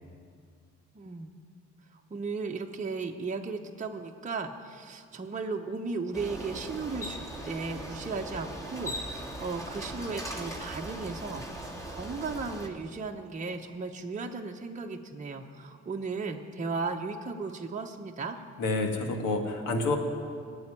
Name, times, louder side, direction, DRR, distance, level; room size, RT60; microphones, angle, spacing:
voice 1, 0.9-1.3 2.1-18.4, right 4 dB, 25° right, 1 dB, 1.0 m, -36 dB
Bicycle, 6.1-12.7, right 1 dB, 10° left, 2.2 m, -39 dB
voice 2, 18.6-20.0, left 2 dB, 90° left, 4 dB, 1.9 m, -28 dB
17.5 x 8.0 x 9.9 m, 2.3 s
cardioid pair, 90°, 30 cm